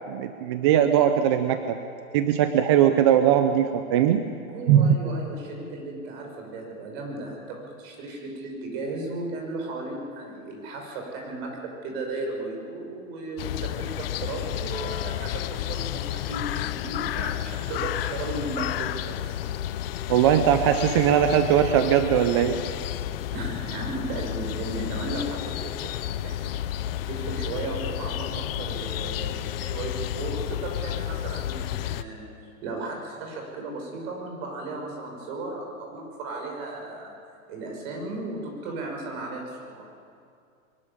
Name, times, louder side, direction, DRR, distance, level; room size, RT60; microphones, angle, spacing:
voice 1, 0.1-1.8 2.1-4.2 4.7-4.9 20.1-22.6, right 10 dB, 20° right, 8 dB, 0.4 m, -20 dB
voice 2, 4.5-19.3 23.3-37.2 37.5-39.9, right 2 dB, 45° right, 1 dB, 6.0 m, -35 dB
sound 1, 13.4-32.0, left 12 dB, 45° left, 0.7 m, -31 dB
23.0 x 13.0 x 9.9 m, 2.4 s
hypercardioid pair, 145°, 43 cm